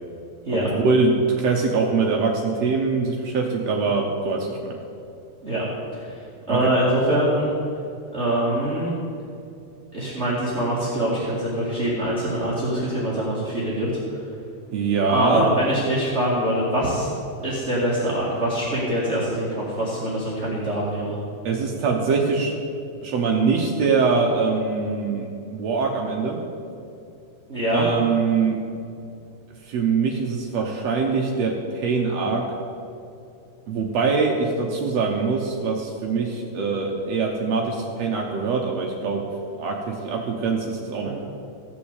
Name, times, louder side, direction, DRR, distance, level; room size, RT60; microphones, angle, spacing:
voice 1, 0.5-4.8 6.5-6.7 14.7-15.5 21.4-22.6 23.0-26.4 27.7-28.6 29.6-32.5 33.7-39.2 39.6-41.1, right 4 dB, 90° right, 0 dB, 1.4 m, -23 dB
voice 2, 6.5-7.5 8.1-8.9 9.9-13.9 15.1-17.1 17.4-21.2 27.5-27.8 41.0-41.1, right 1 dB, 30° right, -7 dB, 1.2 m, -24 dB
15.5 x 6.2 x 8.2 m, 2.5 s
omnidirectional pair, 4.5 m